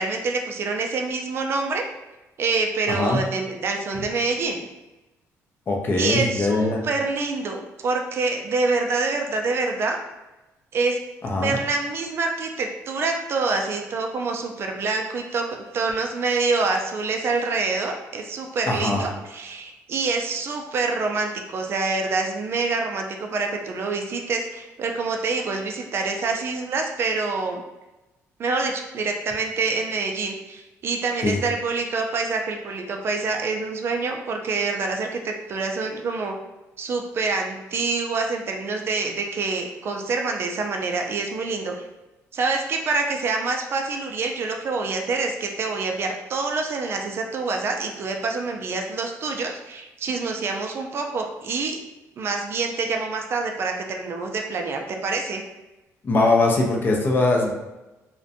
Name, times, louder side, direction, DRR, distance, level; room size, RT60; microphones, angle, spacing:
voice 1, 0.0-1.9 2.4-4.7 6.0-10.0 10.7-11.0 11.3-27.6 28.4-36.3 36.8-41.7 42.3-51.8 52.2-55.4, right 3 dB, 45° right, 3 dB, 0.3 m, -26 dB
voice 2, 2.9-3.2 5.7-6.8 11.2-11.6 18.7-19.0 31.2-31.4 56.0-57.5, left 2 dB, 35° left, 0 dB, 0.5 m, -21 dB
2.5 x 2.1 x 2.6 m, 1.0 s
cardioid pair, 120°, 6 cm